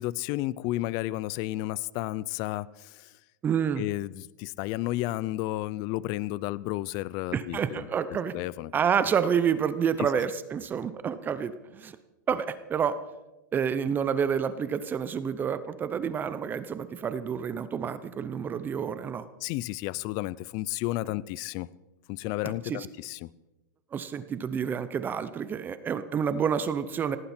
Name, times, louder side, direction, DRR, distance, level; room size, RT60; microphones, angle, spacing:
voice 1, 0.0-3.1 3.8-7.9 8.3-8.7 10.0-10.1 19.4-21.7 22.1-23.3, left 17 dB, 40° left, 21 dB, 0.5 m, -32 dB
voice 2, 3.4-3.8 7.3-8.3 8.7-11.9 12.3-13.0 13.5-19.3 22.7-22.9 23.9-27.2, right 7 dB, 20° right, 13 dB, 0.7 m, -28 dB
17.5 x 17.5 x 4.4 m, 1.0 s
supercardioid pair, 145°, 10 cm